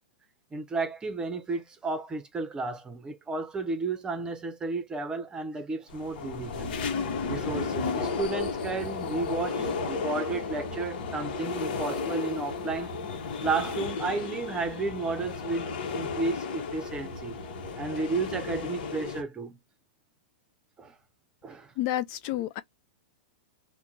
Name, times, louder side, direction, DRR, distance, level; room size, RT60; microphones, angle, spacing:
voice 1, 0.5-6.7 7.3-12.9 13.4-15.6 15.9-17.4 17.7-19.6 20.8-20.9 21.4-21.7, right 3 dB, 15° right, 0.7 m, -32 dB
sound 1, 5.9-19.2, left 4 dB, 65° left, 1.0 m, -33 dB
voice 2, 21.8-22.6, left 13 dB, 45° left, 0.4 m, -30 dB
2.9 x 2.2 x 3.8 m
hypercardioid pair, 140°, 5 cm